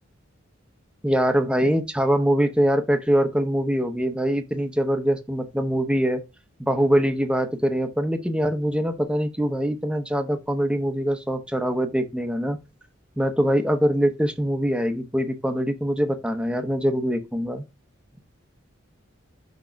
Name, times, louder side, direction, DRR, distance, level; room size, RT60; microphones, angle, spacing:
voice 1, 1.0-6.2 6.6-12.6 13.2-17.6, equal, 5° right, 0.8 m, -23 dB
6.2 x 3.1 x 5.7 m
head